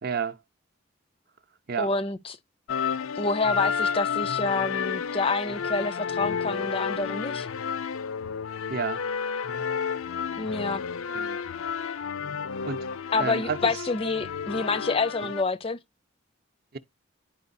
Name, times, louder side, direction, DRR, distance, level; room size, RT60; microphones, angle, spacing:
voice 1, 0.0-0.4 1.7-1.9 8.7-9.1 11.1-11.4 12.6-12.9 13.2-13.8 15.2-15.3 16.7-16.8, right 6 dB, 45° right, 0.6 m, -31 dB
voice 2, 1.8-2.4 3.2-7.5 10.4-10.8 13.1-15.8, left 3 dB, 25° left, 0.5 m, -28 dB
sound 1, 2.7-15.4, left 6 dB, 85° left, 0.5 m, -31 dB
10.5 x 4.6 x 2.6 m
head